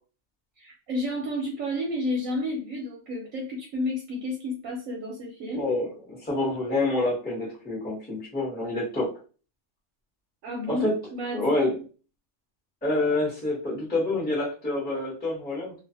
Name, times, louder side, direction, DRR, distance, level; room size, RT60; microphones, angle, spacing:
voice 1, 0.6-5.7 10.4-11.8, left 1 dB, 65° right, -1 dB, 1.0 m, -31 dB
voice 2, 5.5-9.1 10.7-10.9 11.3-11.7 12.8-15.7, left 2 dB, 5° left, -4 dB, 0.9 m, -27 dB
2.4 x 2.4 x 2.7 m, 0.37 s
omnidirectional pair, 1.6 m